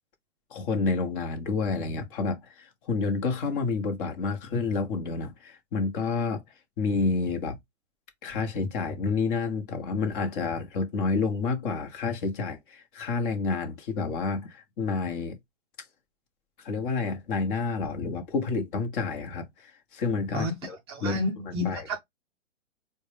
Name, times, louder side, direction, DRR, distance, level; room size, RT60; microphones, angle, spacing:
voice 1, 0.5-6.4 6.8-7.5 8.2-15.4 16.6-20.8 21.0-21.2 21.5-21.8, left 4 dB, 45° left, 1.1 m, -29 dB
voice 2, 20.3-22.0, left 1 dB, 25° right, 0.4 m, -31 dB
4.4 x 2.2 x 3.3 m
hypercardioid pair, 125°, 38 cm